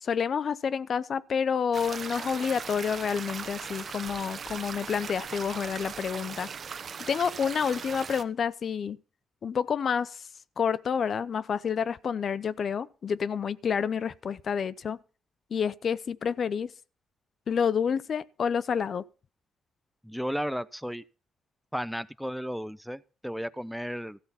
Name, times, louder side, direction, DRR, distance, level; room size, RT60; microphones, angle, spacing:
voice 1, 0.0-6.5 7.1-9.0 9.4-10.3 10.6-15.0 15.5-16.7 17.5-19.0, left 7 dB, 55° left, 0.6 m, -29 dB
sound 1, 1.7-8.2, right 6 dB, 50° right, 1.1 m, -39 dB
voice 2, 20.0-21.0 21.7-24.2, equal, ahead, 0.6 m, -34 dB
14.5 x 7.9 x 5.7 m
cardioid pair, 90°, 0 cm